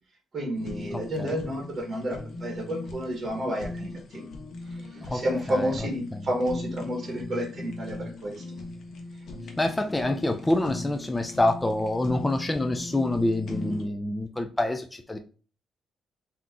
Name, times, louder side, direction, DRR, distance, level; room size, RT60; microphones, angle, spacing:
voice 1, 0.3-4.2 4.6-8.4 9.1-9.2, equal, 35° right, 0 dB, 1.6 m, -31 dB
Fire, 0.6-13.8, left 2 dB, 60° left, 1.0 m, -39 dB
voice 2, 9.6-15.2, left 1 dB, 15° left, 6 dB, 0.4 m, -26 dB
3.7 x 2.9 x 3.7 m, 0.38 s
cardioid pair, 90°, 0 cm